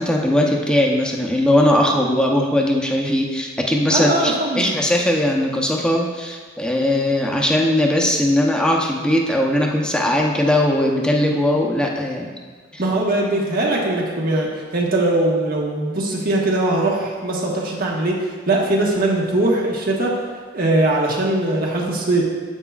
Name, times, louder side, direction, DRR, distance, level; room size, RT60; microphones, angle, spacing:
voice 1, 0.0-12.3 12.7-12.8, left 1 dB, 5° left, -1 dB, 0.8 m, -19 dB
voice 2, 3.9-4.6 12.8-20.2 20.5-22.2, right 2 dB, 55° right, -2 dB, 1.3 m, -20 dB
9.7 x 8.1 x 2.4 m, 1.5 s
head